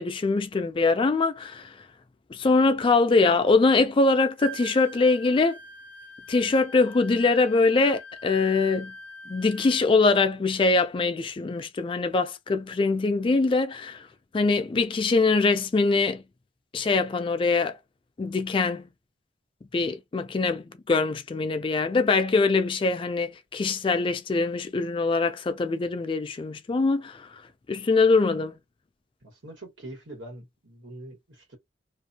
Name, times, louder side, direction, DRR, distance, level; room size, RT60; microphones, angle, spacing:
voice 1, 0.0-1.8 2.3-5.6 6.3-8.9 9.3-14.1 14.3-16.2 16.7-17.8 18.2-18.9 19.7-27.4 27.7-28.6, left 3 dB, 25° left, 0.3 m, -23 dB
Wind instrument woodwind instrument, 4.4-9.9, right 1 dB, 70° right, 0.5 m, -43 dB
voice 2, 29.2-31.6, right 1 dB, 90° right, 1.5 m, -43 dB
2.5 x 2.2 x 2.7 m
head